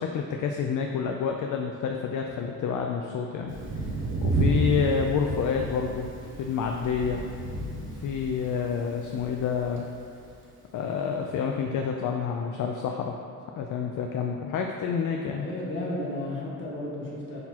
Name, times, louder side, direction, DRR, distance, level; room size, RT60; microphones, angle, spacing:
voice 1, 0.0-3.5 4.2-6.1 6.4-7.2 8.0-9.8 10.7-13.2 13.6-15.5, left 6 dB, 60° left, 2 dB, 0.5 m, -28 dB
Thunder, 3.5-10.3, right 2 dB, 35° right, 1.0 m, -31 dB
voice 2, 15.4-17.4, left 1 dB, 35° left, -6 dB, 1.5 m, -33 dB
10.5 x 4.0 x 2.9 m, 2.5 s
wide cardioid pair, 160°, 35 cm